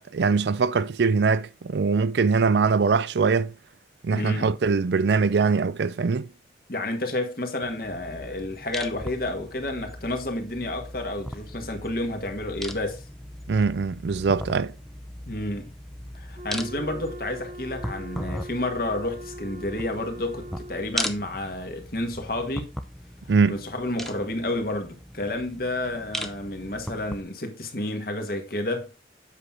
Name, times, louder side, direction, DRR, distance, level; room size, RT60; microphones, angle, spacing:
voice 1, 0.1-3.5 4.0-6.3 13.5-14.7 23.3-23.6, right 4 dB, 70° right, 0.4 m, -22 dB
voice 2, 4.1-4.5 6.7-13.0 15.3-15.7 16.1-22.7 23.5-28.9, left 1 dB, 50° left, 1.6 m, -30 dB
sound 1, 7.6-27.2, equal, ahead, 0.6 m, -38 dB
Wind instrument woodwind instrument, 16.4-21.0, equal, 35° right, 1.2 m, -41 dB
8.2 x 6.0 x 3.7 m
head